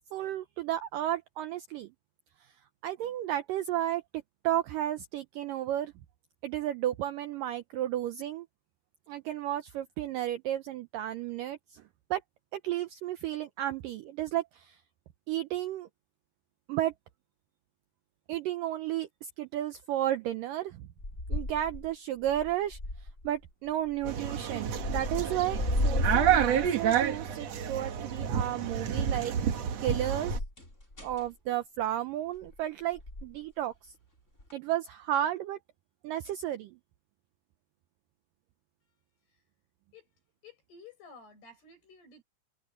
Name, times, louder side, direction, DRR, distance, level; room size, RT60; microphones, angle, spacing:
voice 1, 0.1-1.9 2.8-5.9 6.4-8.5 9.1-11.8 12.1-12.2 12.5-14.8 15.3-15.9 16.7-16.9 18.3-20.9 21.3-22.8 23.2-29.4 29.8-30.4 31.0-33.9 34.5-35.6 36.0-36.8, right 12 dB, 80° right, 2.0 m, -33 dB
sound 1, 21.0-21.9 22.2-23.3 23.9-24.3 24.7-27.1 30.1-31.3 32.4-32.6 33.0-33.4 34.4-34.5, left 1 dB, 15° left, 6.1 m, -33 dB
sound 2, 24.0-30.4, right 9 dB, 55° right, 1.9 m, -29 dB
voice 2, 40.4-42.2, left 4 dB, 70° left, 9.9 m, -53 dB
omnidirectional pair, 4.8 m